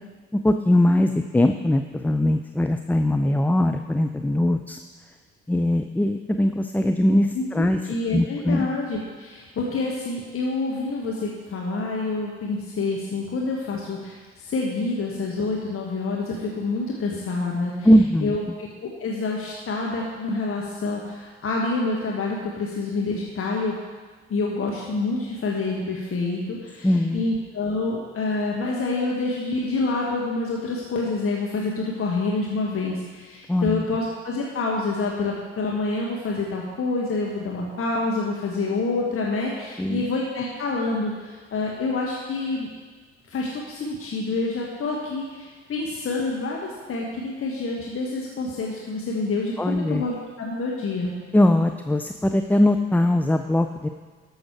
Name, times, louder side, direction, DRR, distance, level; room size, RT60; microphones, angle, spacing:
voice 1, 0.3-4.8 5.5-7.8 8.1-8.7 17.8-18.4 26.8-27.2 33.5-33.8 39.8-40.0 49.6-50.0 51.3-53.9, left 1 dB, 5° left, 7 dB, 0.5 m, -21 dB
voice 2, 7.3-17.9 18.2-23.8 24.3-42.7 43.3-51.1, left 3 dB, 45° left, -2 dB, 1.6 m, -27 dB
13.5 x 6.4 x 4.7 m, 1.4 s
hypercardioid pair, 50°, 32 cm